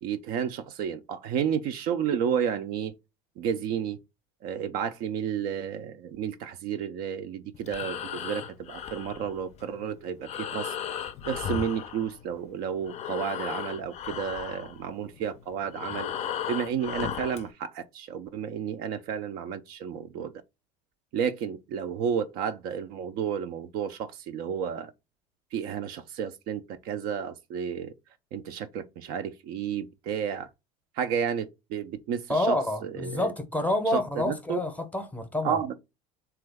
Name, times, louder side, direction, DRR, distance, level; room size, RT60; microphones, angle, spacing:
voice 1, 0.0-2.9 3.4-4.0 4.4-10.7 11.3-16.1 16.5-20.3 21.1-24.9 25.5-27.9 28.3-30.5 30.9-33.3 33.9-34.6 35.4-35.7, right 8 dB, 55° right, 0.4 m, -31 dB
Breathing, 7.5-12.5 12.8-17.5, left 8 dB, 35° left, 0.4 m, -36 dB
voice 2, 32.3-35.6, left 1 dB, 10° left, 0.7 m, -28 dB
3.1 x 2.3 x 3.3 m
hypercardioid pair, 90°, 18 cm